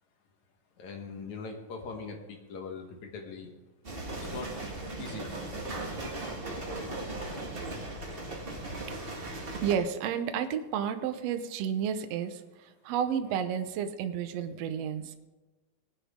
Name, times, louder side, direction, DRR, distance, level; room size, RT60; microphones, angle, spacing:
voice 1, 0.8-3.5 4.2-4.5 5.0-5.2 6.7-7.1, left 4 dB, 60° left, 3 dB, 2.5 m, -41 dB
sound 1, 3.8-9.7, right 2 dB, 30° right, 1.0 m, -38 dB
Clapping, 5.7-6.4, right 3 dB, 50° right, 2.7 m, -45 dB
voice 2, 8.9-15.2, right 8 dB, 70° right, 8 dB, 1.5 m, -32 dB
19.5 x 10.0 x 3.7 m, 1.2 s
omnidirectional pair, 4.1 m